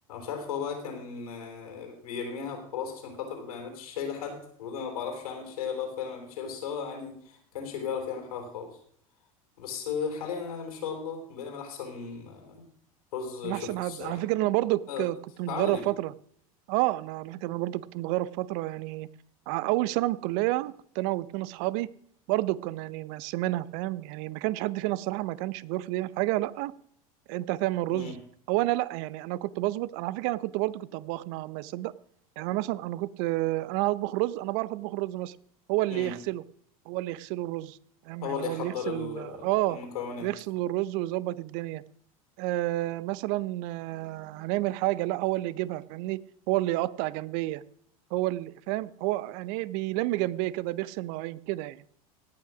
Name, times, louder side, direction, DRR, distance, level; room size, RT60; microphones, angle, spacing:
voice 1, 0.1-8.8 9.6-12.6 13.1-14.2 14.9-15.1 15.5-15.8 27.9-28.2 35.9-36.1 38.2-40.3, left 6 dB, 80° left, 4 dB, 3.7 m, -36 dB
voice 2, 13.4-16.1 16.7-19.1 19.5-21.9 22.3-26.7 27.3-28.2 28.5-31.9 32.4-35.4 35.7-36.4 36.9-37.8 38.1-39.8 40.2-41.8 42.4-46.2 46.5-47.6 48.1-51.8, right 17 dB, 60° right, 20 dB, 0.6 m, -30 dB
17.0 x 5.8 x 6.0 m, 0.63 s
hypercardioid pair, 85°, 19 cm